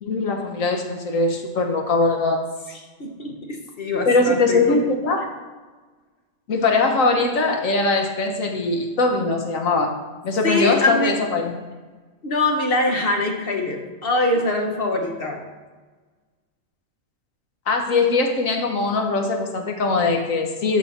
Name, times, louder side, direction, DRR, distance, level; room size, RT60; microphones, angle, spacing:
voice 1, 0.0-2.5 4.0-5.3 6.5-10.0 10.2-11.5 17.7-20.8, left 3 dB, 80° left, 3 dB, 1.6 m, -21 dB
voice 2, 3.0-4.8 10.4-11.2 12.2-15.4, left 2 dB, 45° left, 2 dB, 1.5 m, -23 dB
13.5 x 5.5 x 4.3 m, 1.3 s
omnidirectional pair, 1.4 m